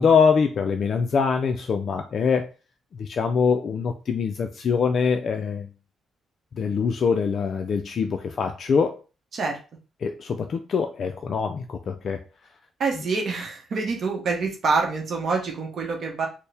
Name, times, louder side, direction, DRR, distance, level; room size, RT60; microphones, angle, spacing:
voice 1, 0.0-2.5 3.0-5.7 6.5-9.0 10.0-12.2, left 5 dB, 45° left, 6 dB, 0.3 m, -23 dB
voice 2, 12.8-16.3, right 4 dB, 45° right, 1 dB, 0.8 m, -26 dB
4.3 x 2.0 x 3.3 m, 0.34 s
cardioid pair, 145°, 0 cm